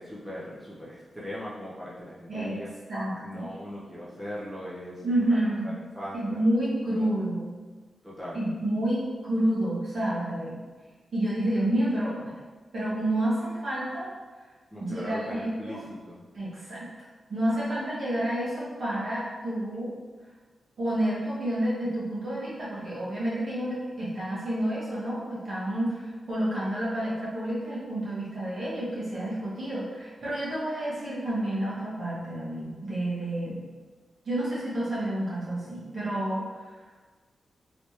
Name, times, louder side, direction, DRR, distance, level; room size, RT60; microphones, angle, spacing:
voice 1, 0.0-2.7 3.2-6.4 6.9-7.1 8.0-8.4 14.7-16.2, left 1 dB, 5° right, -8 dB, 0.7 m, -39 dB
voice 2, 2.9-3.5 5.0-5.7 6.1-7.5 8.3-10.6 11.1-12.3 12.7-14.1 14.8-15.8 16.3-16.9 17.3-19.9 20.8-33.6 34.2-36.4, right 1 dB, 55° right, -8 dB, 1.4 m, -29 dB
3.2 x 3.1 x 2.8 m, 1.3 s
wide cardioid pair, 115°, 0 cm